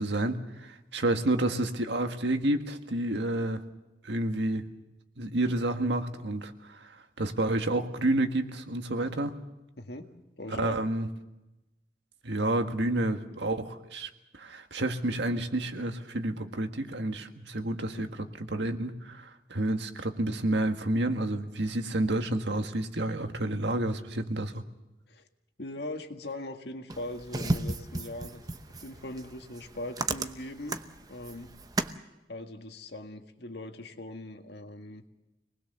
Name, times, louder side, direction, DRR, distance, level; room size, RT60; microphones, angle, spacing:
voice 1, 0.0-3.6 4.0-4.7 5.2-9.4 10.5-11.1 12.2-18.1 18.5-24.6, right 1 dB, 80° right, 6 dB, 1.7 m, -30 dB
voice 2, 10.4-10.8 18.0-18.1 25.1-25.3 25.6-28.4 28.8-30.8 31.1-31.5 32.3-35.0, left 1 dB, 70° left, 5 dB, 1.8 m, -40 dB
sound 1, 26.9-32.0, right 2 dB, 20° right, 0.8 m, -34 dB
26.0 x 20.0 x 6.9 m, 1.0 s
head